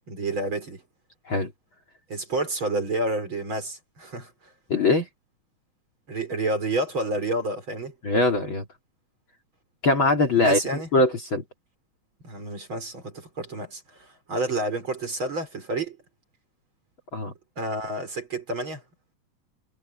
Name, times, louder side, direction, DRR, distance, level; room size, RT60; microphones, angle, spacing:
voice 1, 0.1-0.8 2.1-4.3 6.1-8.0 10.4-10.9 12.2-16.0 17.6-18.8, right 2 dB, 35° right, 5.1 m, -29 dB
voice 2, 4.7-5.1 8.0-8.7 9.8-10.6 10.9-11.4 17.1-17.3, left 2 dB, 40° left, 3.2 m, -21 dB
omnidirectional pair, 3.9 m